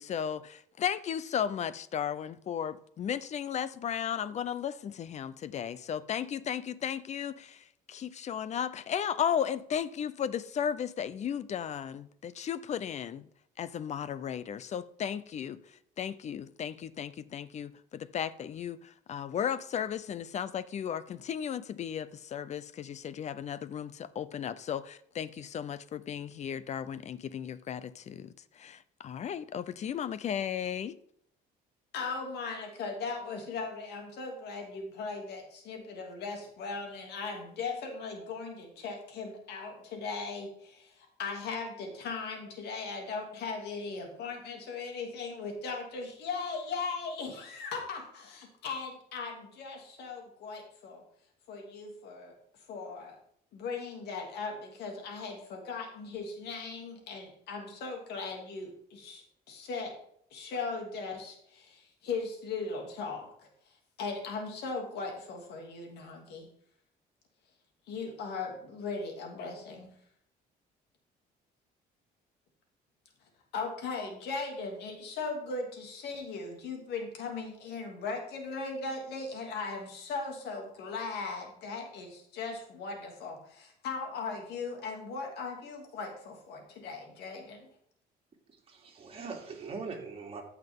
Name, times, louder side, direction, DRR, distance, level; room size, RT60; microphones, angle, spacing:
voice 1, 0.0-13.3 13.6-31.0, left 8 dB, 40° left, 0.6 m, -35 dB
voice 2, 31.9-51.0 51.5-52.4 52.7-53.2 53.5-59.9 60.3-63.5 64.0-66.5 67.9-69.9 73.5-87.7, left 4 dB, 75° left, 2.6 m, -38 dB
voice 3, 88.5-90.4, right 4 dB, 35° right, 2.9 m, -41 dB
14.5 x 5.8 x 3.7 m
cardioid pair, 110°, 17 cm